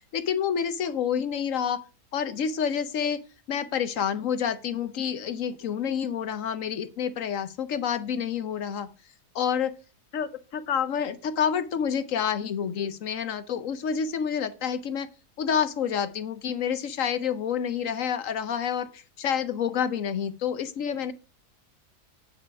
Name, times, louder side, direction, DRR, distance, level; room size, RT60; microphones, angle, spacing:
voice 1, 0.0-1.8 2.1-3.2 3.5-8.9 9.3-9.7 10.1-15.1 15.4-21.1, left 8 dB, 60° left, 12 dB, 1.0 m, -28 dB
8.7 x 4.8 x 5.8 m, 0.33 s
omnidirectional pair, 1.7 m